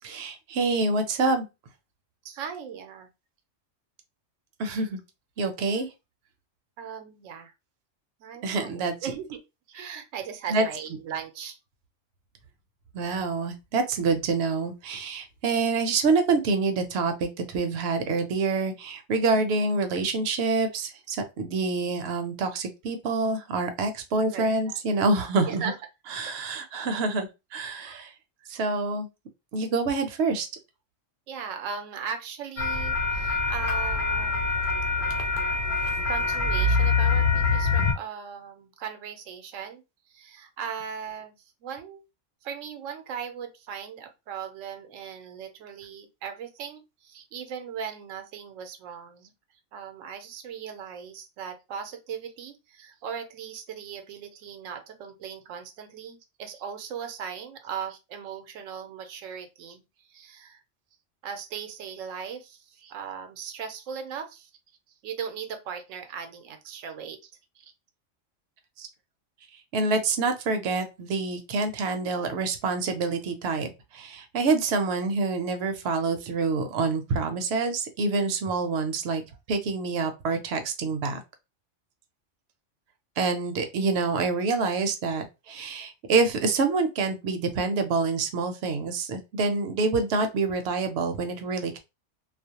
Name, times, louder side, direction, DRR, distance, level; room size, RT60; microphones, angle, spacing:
voice 1, 0.0-1.4 4.6-5.0 5.4-5.9 8.4-8.9 10.5-10.7 12.9-25.7 26.1-28.1 28.5-29.1 29.5-30.5 68.8-68.9 69.7-73.7 73.9-79.2 79.5-81.2 83.2-91.8, right 3 dB, 65° right, 7 dB, 0.8 m, -26 dB
voice 2, 2.2-3.1 6.8-7.5 8.2-9.4 9.7-11.6 24.3-24.8 25.5-25.8 31.3-34.5 36.1-39.8 40.1-41.4 41.6-42.0 42.4-49.3 49.7-59.8 60.1-60.6 61.2-64.5 65.0-67.2, right 7 dB, 90° right, 7 dB, 0.9 m, -38 dB
sound 1, 32.6-37.9, left 4 dB, 65° left, 0.8 m, -24 dB
2.4 x 2.0 x 2.7 m, 0.25 s
omnidirectional pair, 1.3 m